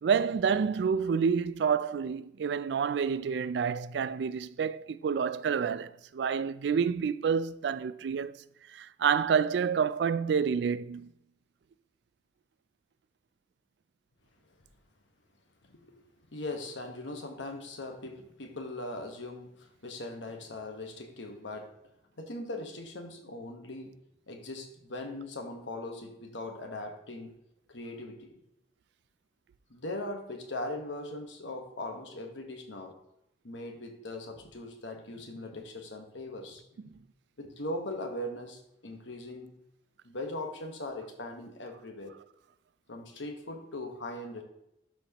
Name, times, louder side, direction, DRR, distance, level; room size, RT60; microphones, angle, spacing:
voice 1, 0.0-8.4 8.7-11.1, right 6 dB, 70° right, 0.3 m, -28 dB
voice 2, 15.6-16.0 16.3-21.7 22.2-23.9 24.3-27.3 27.7-28.3 29.7-32.9 33.4-36.9 37.4-39.5 40.0-42.2 42.9-44.4, left 1 dB, 85° left, 1.3 m, -40 dB
12.0 x 4.4 x 2.9 m
head